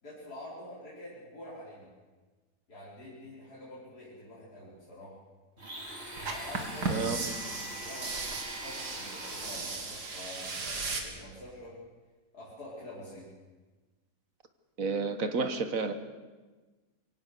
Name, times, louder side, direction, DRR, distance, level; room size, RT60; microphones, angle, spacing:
voice 1, 0.0-1.9 2.7-5.2 6.3-7.1 7.4-11.8 12.3-13.3, left 1 dB, 70° left, -9 dB, 5.5 m, -47 dB
Domestic sounds home sounds, 5.6-10.0, right 1 dB, 40° right, 4.3 m, -43 dB
sound 1, 6.2-11.0, right 3 dB, 80° right, 2.8 m, -36 dB
voice 2, 6.9-7.4 14.8-15.9, right 4 dB, 55° right, 10 dB, 1.6 m, -31 dB
23.5 x 17.0 x 6.6 m, 1.3 s
omnidirectional pair, 1.7 m